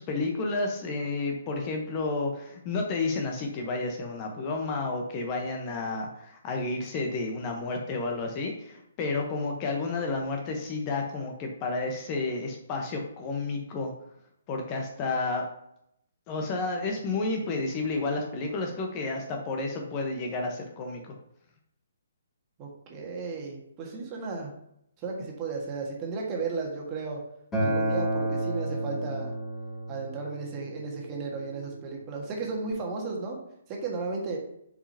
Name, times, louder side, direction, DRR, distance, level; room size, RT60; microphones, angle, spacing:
voice 1, 0.0-13.9 14.5-15.4 16.3-21.1, left 3 dB, 30° left, 2 dB, 1.0 m, -31 dB
voice 2, 22.6-24.5 25.0-27.2 27.6-29.3 29.9-33.4 33.7-34.4, right 4 dB, 25° right, 0 dB, 1.6 m, -34 dB
Acoustic guitar, 27.5-32.7, right 1 dB, 15° left, 2.5 m, -32 dB
6.9 x 5.0 x 2.8 m, 0.74 s
figure-of-eight pair, 135°, 0 cm